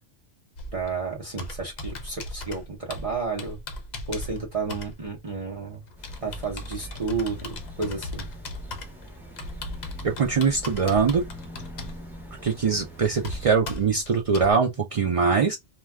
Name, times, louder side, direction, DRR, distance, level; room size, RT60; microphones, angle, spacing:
Computer keyboard, 0.6-14.5, left 2 dB, 50° left, 0.6 m, -38 dB
voice 1, 0.7-3.6 4.1-5.8 6.2-8.3, right 4 dB, 35° right, 0.7 m, -31 dB
sound 1, 6.0-13.5, right 1 dB, ahead, 0.6 m, -44 dB
voice 2, 10.0-11.3 12.4-15.6, right 5 dB, 65° right, 0.3 m, -22 dB
2.2 x 2.2 x 3.3 m
omnidirectional pair, 1.1 m